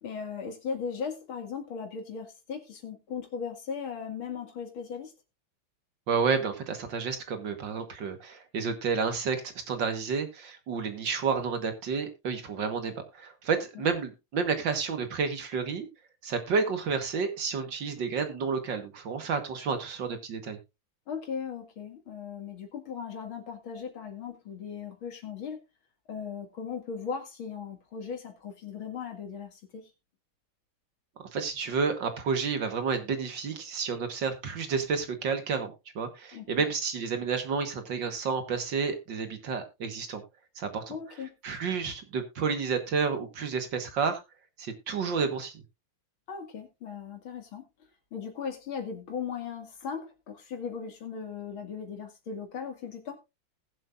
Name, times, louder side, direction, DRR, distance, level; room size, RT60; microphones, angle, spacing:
voice 1, 0.0-5.1 13.8-13.9 21.1-25.6 26.1-29.9 36.3-36.6 40.9-41.3 46.3-47.6 48.1-53.2, left 6 dB, 70° left, 4 dB, 2.9 m, -38 dB
voice 2, 6.1-15.9 16.2-20.6 31.3-40.2 40.6-40.8 41.4-44.2 44.6-45.6, right 5 dB, 60° right, 8 dB, 2.0 m, -30 dB
20.0 x 7.6 x 2.5 m, 0.25 s
omnidirectional pair, 2.4 m